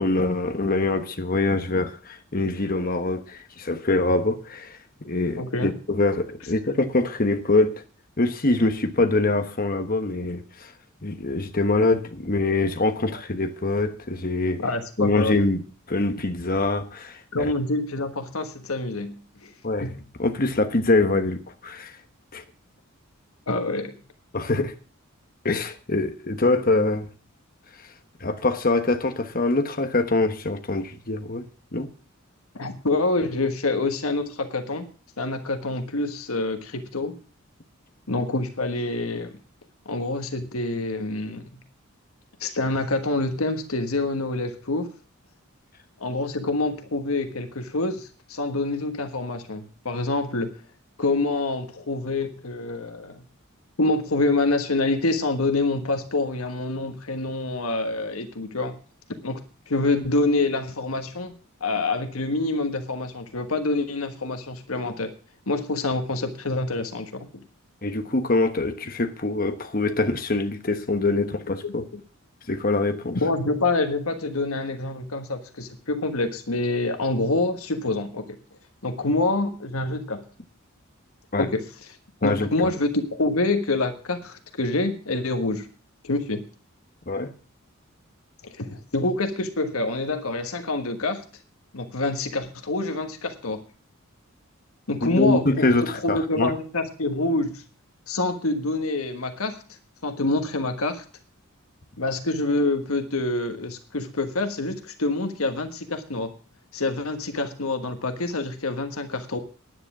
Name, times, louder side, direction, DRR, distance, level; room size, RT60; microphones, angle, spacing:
voice 1, 0.0-7.8 8.2-10.7 11.0-14.6 15.0-15.6 15.9-17.5 19.6-21.9 22.3-22.4 24.3-24.7 25.4-27.1 28.2-31.9 67.8-71.9 72.5-73.2 81.3-81.5 82.2-82.5 87.1-87.3 95.0-96.5, left 2 dB, 40° left, 1.3 m, -24 dB
voice 2, 5.4-5.7 13.1-13.2 14.6-15.4 17.3-19.5 19.8-20.0 23.5-24.0 32.5-34.9 35.2-37.2 38.1-39.3 39.8-41.6 42.4-44.9 46.0-50.5 51.0-53.3 53.8-58.7 59.2-61.3 61.6-65.1 65.5-67.4 71.6-71.7 73.2-78.4 78.8-80.2 81.4-81.7 82.2-85.7 86.0-86.5 88.4-91.2 91.7-93.6 94.9-95.7 96.0-97.6 98.1-99.6 100.0-101.0 102.0-106.3 106.7-109.4, left 2 dB, 85° left, 1.4 m, -26 dB
10.0 x 9.6 x 6.1 m
head